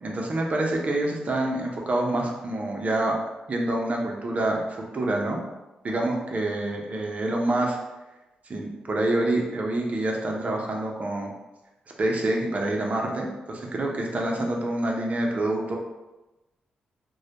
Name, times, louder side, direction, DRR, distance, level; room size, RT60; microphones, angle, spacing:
voice 1, 0.0-3.1 3.5-5.4 5.8-7.8 8.5-11.3 12.0-15.8, right 1 dB, 45° right, 0 dB, 0.5 m, -27 dB
2.1 x 2.1 x 2.8 m, 1.0 s
supercardioid pair, 50°, 3 cm